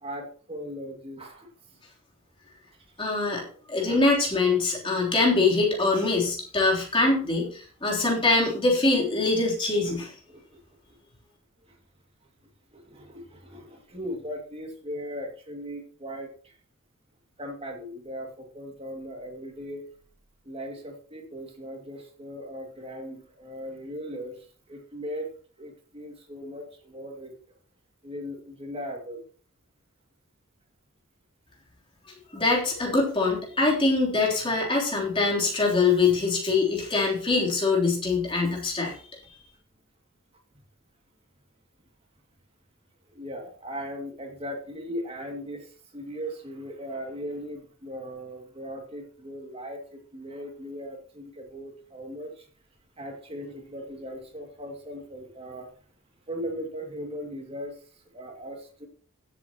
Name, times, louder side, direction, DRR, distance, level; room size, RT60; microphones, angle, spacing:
voice 1, 0.0-1.5 3.5-4.0 7.9-8.0 9.8-10.0 10.3-10.4 12.7-16.3 17.4-19.9 20.4-24.4 24.7-25.3 25.6-27.3 28.0-29.2 43.1-52.4 53.0-55.7 56.3-57.8 58.1-58.9, equal, 25° right, 2 dB, 2.4 m, -38 dB
voice 2, 3.0-3.4 3.7-10.1 32.3-38.9, left 3 dB, 25° left, -2 dB, 3.4 m, -23 dB
16.5 x 7.8 x 2.9 m, 0.43 s
head